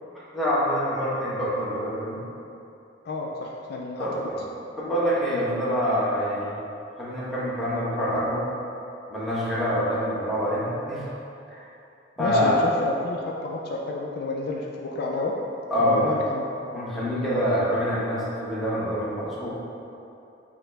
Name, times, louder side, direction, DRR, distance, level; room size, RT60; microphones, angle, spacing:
voice 1, 0.3-2.2 4.0-4.4 4.8-6.6 7.0-8.5 9.1-11.0 11.5-11.6 12.2-12.6 15.7-16.1 16.7-19.5, equal, ahead, -9 dB, 0.9 m, -25 dB
voice 2, 3.1-4.1 12.2-15.4 15.8-16.8, left 2 dB, 55° left, -1 dB, 0.3 m, -30 dB
4.9 x 2.1 x 4.5 m, 2.7 s
head